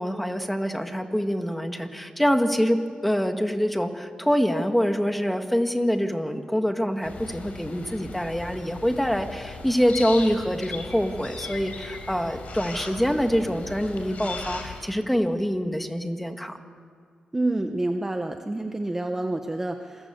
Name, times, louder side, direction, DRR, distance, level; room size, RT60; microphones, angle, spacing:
voice 1, 0.0-16.6, equal, 5° left, 6 dB, 1.7 m, -25 dB
sound 1, 7.0-14.8, left 4 dB, 60° left, 4.7 m, -38 dB
voice 2, 17.3-20.1, right 2 dB, 15° right, 5 dB, 1.0 m, -28 dB
27.5 x 22.0 x 8.1 m, 2.2 s
wide cardioid pair, 125°, 3 cm